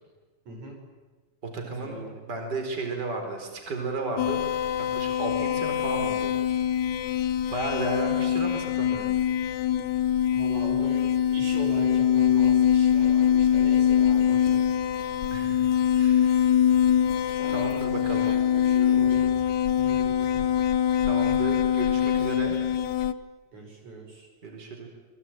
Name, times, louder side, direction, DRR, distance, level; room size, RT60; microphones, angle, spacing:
voice 1, 0.5-0.8 1.6-2.2 10.3-11.1 11.3-14.7 17.4-18.0 18.2-19.3 19.7-20.6 23.5-24.3, right 2 dB, 75° right, 2 dB, 7.3 m, -40 dB
voice 2, 1.5-2.0 2.2-4.4 4.9-6.3 7.5-9.2 15.3-16.5 17.5-18.3 21.0-22.6 24.4-24.9, right 2 dB, 35° right, 3 dB, 4.7 m, -33 dB
sound 1, 4.2-23.1, left 9 dB, 85° left, 2.4 m, -23 dB
28.5 x 22.0 x 9.2 m, 1.3 s
omnidirectional pair, 3.3 m